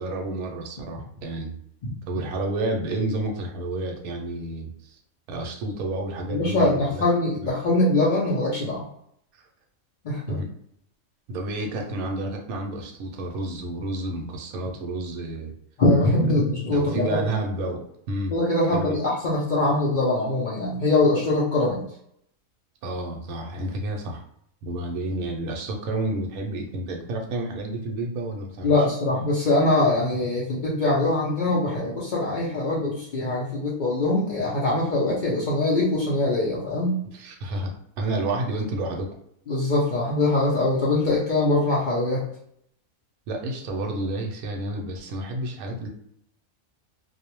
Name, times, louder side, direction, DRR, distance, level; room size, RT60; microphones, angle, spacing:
voice 1, 0.0-1.5 2.1-5.0 5.3-7.0 7.4-7.5 9.3-9.4 10.3-10.5 11.3-15.5 16.7-18.4 18.7-19.0 22.8-24.2 24.6-28.7 37.1-39.1 43.3-45.9, right 2 dB, 80° right, 1 dB, 1.0 m, -30 dB
voice 2, 6.3-8.8 10.0-10.4 15.8-17.2 18.3-21.8 28.6-37.0 39.5-42.2, left 2 dB, 85° left, -5 dB, 0.4 m, -23 dB
2.4 x 2.1 x 2.9 m, 0.71 s
omnidirectional pair, 1.5 m